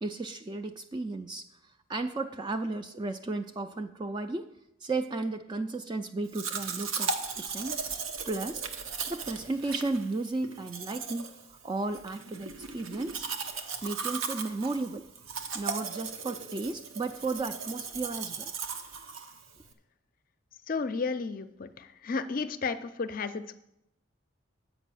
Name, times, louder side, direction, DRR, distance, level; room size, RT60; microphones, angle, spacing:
voice 1, 0.0-1.4 1.9-4.5 4.8-7.8 8.3-8.6 9.1-13.3 13.8-15.0 15.5-18.5, right 3 dB, 20° right, 8 dB, 0.3 m, -34 dB
Domestic sounds home sounds, 6.3-19.7, right 5 dB, 85° right, 0.8 m, -37 dB
voice 2, 20.7-23.6, left 4 dB, 45° left, 11 dB, 0.5 m, -33 dB
8.1 x 5.5 x 7.6 m, 0.83 s
head